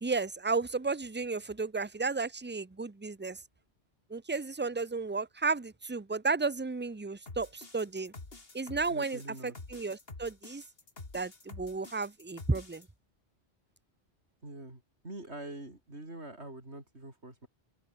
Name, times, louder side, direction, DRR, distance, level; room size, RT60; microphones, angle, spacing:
voice 1, 0.0-3.4 4.1-8.1 8.5-10.6 11.1-12.9, right 4 dB, 10° right, 0.6 m, -33 dB
sound 1, 7.3-12.8, left 3 dB, 60° left, 3.1 m, -48 dB
voice 2, 8.9-9.6 14.4-17.5, right 2 dB, 75° right, 5.9 m, -45 dB
open air
omnidirectional pair, 1.1 m